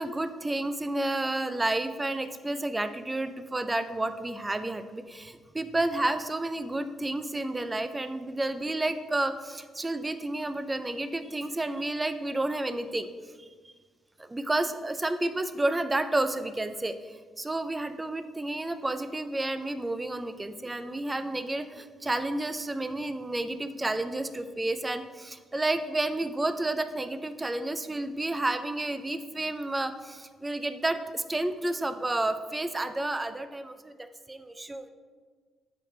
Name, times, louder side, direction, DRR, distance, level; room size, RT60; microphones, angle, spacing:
voice 1, 0.0-13.1 13.4-13.7 14.2-34.9, right 2 dB, 15° right, 10 dB, 0.5 m, -31 dB
8.3 x 5.1 x 3.2 m, 1.5 s
cardioid pair, 90°, 0 cm